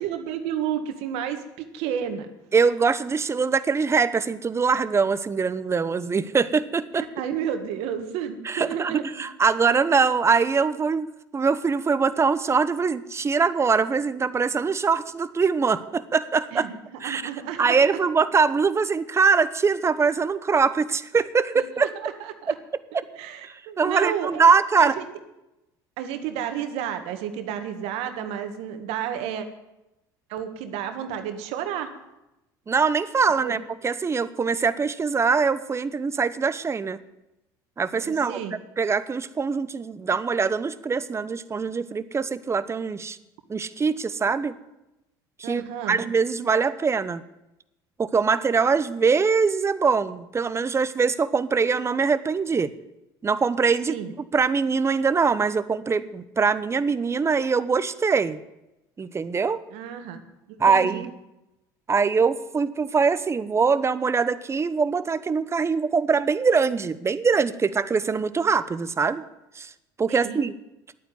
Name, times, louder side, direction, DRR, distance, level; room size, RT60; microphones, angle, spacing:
voice 1, 0.0-2.3 6.9-9.2 16.5-17.8 21.8-22.6 23.2-24.4 24.8-25.1 26.0-29.5 30.3-31.9 33.4-33.6 38.0-38.5 45.4-46.0 53.9-54.1 59.7-60.2 60.5-61.0 70.1-70.4, right 9 dB, 70° right, 7 dB, 1.7 m, -31 dB
voice 2, 2.5-7.0 8.4-16.7 17.0-17.2 17.6-21.9 23.8-24.9 32.7-37.0 37.8-38.4 38.8-43.2 43.5-44.5 45.4-47.2 48.0-52.7 53.2-53.9 54.3-58.4 59.0-59.6 60.6-61.1 61.9-69.2 69.6-69.7 70.0-70.5, right 5 dB, 25° right, 14 dB, 0.9 m, -23 dB
11.0 x 9.1 x 9.6 m, 0.93 s
hypercardioid pair, 75°, 11 cm